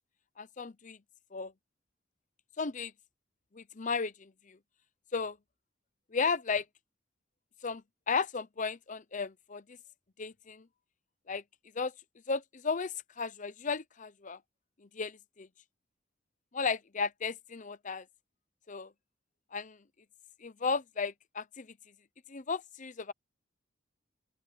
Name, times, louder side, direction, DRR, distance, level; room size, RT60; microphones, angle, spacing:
voice 1, 0.4-1.0 1.3-1.5 2.6-2.9 3.5-4.6 5.1-5.4 6.1-6.6 7.6-7.8 8.1-9.6 10.2-10.6 11.3-11.4 11.7-11.9 12.3-14.4 14.9-15.5 16.5-18.0 18.7-18.9 19.5-19.8 20.4-21.7 22.3-23.1, left 5 dB, 40° left, 0.7 m, -34 dB
open air
head